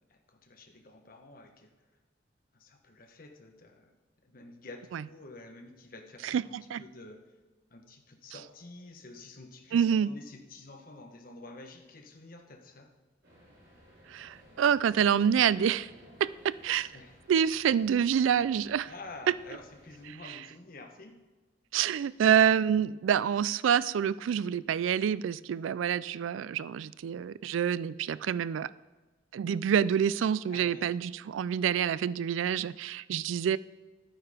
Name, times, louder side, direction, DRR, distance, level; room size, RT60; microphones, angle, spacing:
voice 1, 0.1-1.7 2.5-3.9 4.2-7.4 7.7-12.9 16.9-17.2 18.8-21.2 30.5-31.0, left 2 dB, 45° left, 5 dB, 1.2 m, -49 dB
voice 2, 6.2-6.8 9.7-10.1 14.1-15.9 16.2-16.9 17.3-18.9 21.7-28.7 29.3-33.6, right 8 dB, 85° right, 19 dB, 0.3 m, -27 dB
sound 1, 13.2-20.1, equal, 55° right, 4.0 m, -57 dB
12.0 x 9.0 x 5.0 m, 1.3 s
head